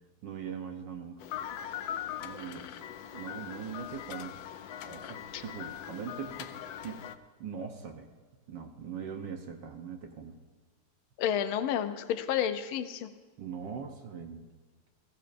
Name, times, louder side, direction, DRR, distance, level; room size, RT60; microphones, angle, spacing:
voice 1, 0.2-1.2 2.2-2.7 3.1-4.4 4.8-6.5 6.8-7.0 7.4-8.1 8.5-10.3 13.4-14.5, right 7 dB, 65° right, 4 dB, 1.5 m, -41 dB
sound 1, 1.2-7.2, left 10 dB, 75° left, 1.3 m, -41 dB
voice 2, 11.2-13.1, left 9 dB, 90° left, 10 dB, 1.5 m, -30 dB
21.0 x 15.5 x 2.6 m, 1.4 s
omnidirectional pair, 2.2 m